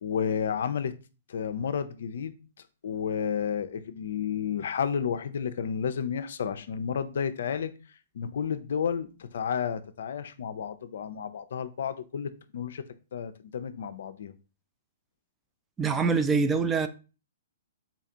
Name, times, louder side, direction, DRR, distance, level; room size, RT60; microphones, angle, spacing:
voice 1, 0.0-0.9 1.3-2.3 2.8-7.7 8.1-12.8 13.1-14.3, left 7 dB, 70° left, 0.4 m, -31 dB
voice 2, 15.8-16.9, right 4 dB, 15° right, 0.3 m, -24 dB
3.9 x 2.4 x 2.8 m
hypercardioid pair, 125°, 0 cm